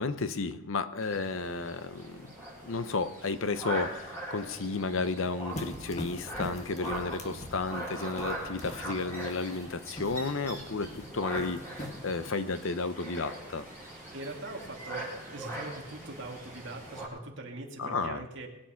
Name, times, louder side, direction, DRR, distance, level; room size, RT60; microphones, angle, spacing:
voice 1, 0.0-2.3 2.6-13.7 17.8-18.2, left 3 dB, 70° left, 12 dB, 0.8 m, -33 dB
sound 1, 1.0-17.1, right 1 dB, 10° left, 6.0 m, -41 dB
sound 2, 5.5-12.3, left 1 dB, 30° left, 1.6 m, -44 dB
voice 2, 14.1-18.5, right 2 dB, 60° right, 0 dB, 2.4 m, -42 dB
21.0 x 9.0 x 5.8 m, 1.0 s
head